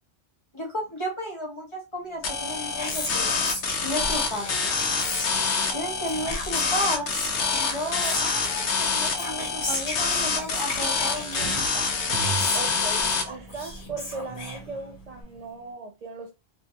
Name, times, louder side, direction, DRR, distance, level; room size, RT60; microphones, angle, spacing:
voice 1, 0.5-3.5 3.8-4.9 5.7-7.1 7.5-11.5 11.7-11.9, equal, 30° left, 0.7 m, -33 dB
sound 1, 2.2-13.2, left 4 dB, 75° left, 0.9 m, -26 dB
Whispering, 2.3-15.2, left 1 dB, 45° left, 1.2 m, -37 dB
sound 2, 8.6-8.7 9.4-11.7 12.1-13.9, right 6 dB, 85° right, 0.9 m, -37 dB
voice 2, 12.5-16.3, right 3 dB, 65° right, 0.4 m, -38 dB
2.6 x 2.1 x 2.7 m
omnidirectional pair, 1.2 m